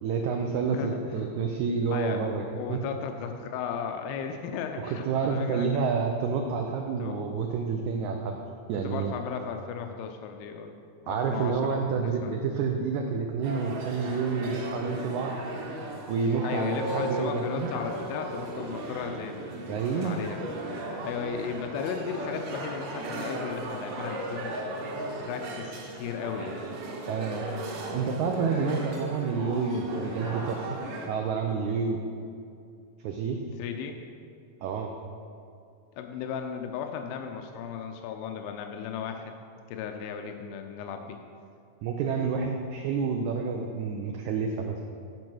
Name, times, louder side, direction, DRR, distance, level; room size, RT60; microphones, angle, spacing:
voice 1, 0.0-2.8 4.8-8.4 8.7-9.2 11.1-15.3 16.1-17.7 19.7-20.2 27.1-27.5 27.8-30.7 31.1-32.0 33.0-33.4 34.6-34.9 41.8-44.8, right 5 dB, 90° right, 3 dB, 1.6 m, -29 dB
voice 2, 0.7-1.3 1.9-2.2 2.5-5.7 7.0-7.2 8.8-10.7 11.0-12.3 16.4-20.4 20.8-24.5 25.2-26.7 33.5-34.0 35.9-39.3 39.7-41.2, left 7 dB, 90° left, 5 dB, 2.4 m, -36 dB
sound 1, 13.4-31.1, right 1 dB, 70° right, 2.4 m, -36 dB
10.5 x 5.3 x 6.2 m, 2.4 s
omnidirectional pair, 4.1 m